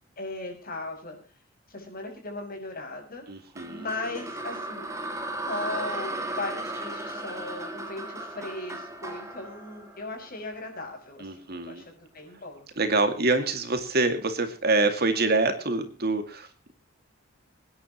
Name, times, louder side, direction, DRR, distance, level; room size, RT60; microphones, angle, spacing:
voice 1, 0.2-1.2 1.7-3.2 3.7-4.9 5.5-12.7, left 2 dB, 50° left, 2 dB, 6.1 m, -37 dB
voice 2, 3.3-3.9 11.2-11.8 12.8-16.7, right 3 dB, 55° right, 8 dB, 2.2 m, -26 dB
sound 1, 3.6-10.7, right 2 dB, 15° right, 2.3 m, -36 dB
26.5 x 10.5 x 3.0 m, 0.34 s
head